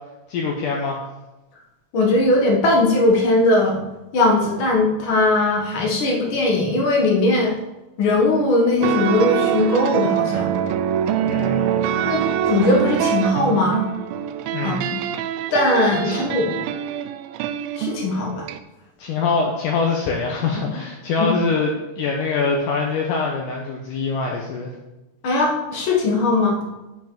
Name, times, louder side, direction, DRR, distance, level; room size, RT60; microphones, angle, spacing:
voice 1, 0.3-1.0 11.3-12.0 14.5-14.9 16.0-16.2 19.0-24.7, left 4 dB, 75° left, -1 dB, 2.2 m, -24 dB
voice 2, 1.9-3.8 4.1-7.5 8.0-10.5 12.0-13.8 14.6-15.0 15.5-16.6 17.8-18.4 21.2-21.3 25.2-26.6, left 2 dB, 50° left, -1 dB, 1.5 m, -19 dB
sound 1, 8.8-18.6, right 10 dB, 80° right, 2.2 m, -24 dB
13.0 x 5.1 x 3.9 m, 1.1 s
omnidirectional pair, 4.4 m